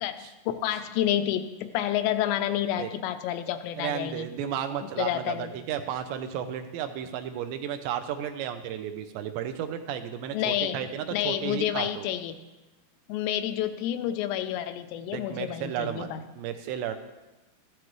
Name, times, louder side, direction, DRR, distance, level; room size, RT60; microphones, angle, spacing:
voice 1, 0.0-4.3 4.8-5.6 10.3-12.4 13.1-16.2, left 11 dB, 85° left, 10 dB, 2.8 m, -29 dB
voice 2, 3.8-12.1 15.1-16.1 16.4-17.0, right 9 dB, 85° right, 7 dB, 3.0 m, -33 dB
15.0 x 12.0 x 3.2 m, 1.1 s
omnidirectional pair, 5.0 m